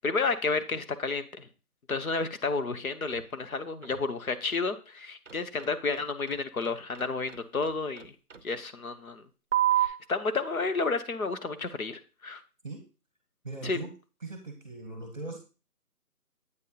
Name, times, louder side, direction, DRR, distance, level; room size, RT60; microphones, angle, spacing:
voice 1, 0.0-1.5 1.9-8.1 8.4-9.2 9.8-12.4 13.6-13.8, left 4 dB, 65° left, 10 dB, 0.9 m, -31 dB
sound 1, 3.0-3.3 3.8-4.1 5.3-8.4 9.5-9.9, right 12 dB, 50° right, 0.6 m, -29 dB
voice 2, 13.4-13.9 14.2-15.4, right 3 dB, 30° right, 5 dB, 0.9 m, -39 dB
8.1 x 5.5 x 2.8 m, 0.34 s
figure-of-eight pair, 170°, 47 cm